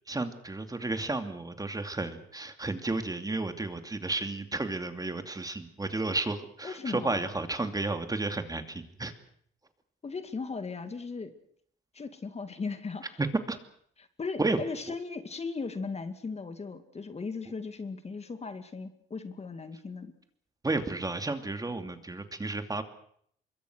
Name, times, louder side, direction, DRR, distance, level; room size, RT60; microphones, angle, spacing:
voice 1, 0.1-9.1 13.2-13.6 14.4-14.6 20.6-22.8, right 2 dB, 20° right, 8 dB, 2.7 m, -32 dB
voice 2, 6.6-7.3 10.0-11.3 11.9-13.2 14.2-20.1, left 4 dB, 30° left, 9 dB, 2.2 m, -37 dB
25.0 x 22.5 x 6.3 m, 0.65 s
cardioid pair, 90°, 20 cm